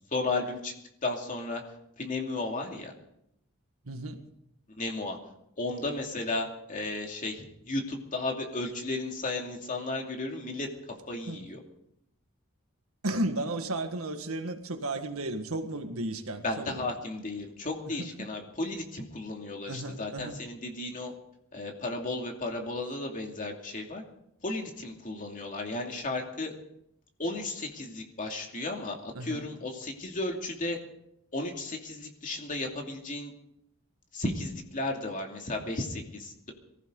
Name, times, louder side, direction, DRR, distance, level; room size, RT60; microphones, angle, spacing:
voice 1, 0.1-0.7 1.0-1.6 2.0-2.9 4.7-5.2 5.6-11.6 16.4-21.1 21.5-24.0 24.4-26.5 27.2-30.8 31.3-33.3 34.1-36.5, left 2 dB, 40° left, 2 dB, 2.6 m, -34 dB
voice 2, 3.9-4.2 11.3-11.5 13.0-16.8 18.0-18.3 19.7-20.4 29.1-29.5, right 2 dB, 85° right, 6 dB, 1.7 m, -34 dB
23.0 x 15.5 x 3.9 m, 0.77 s
head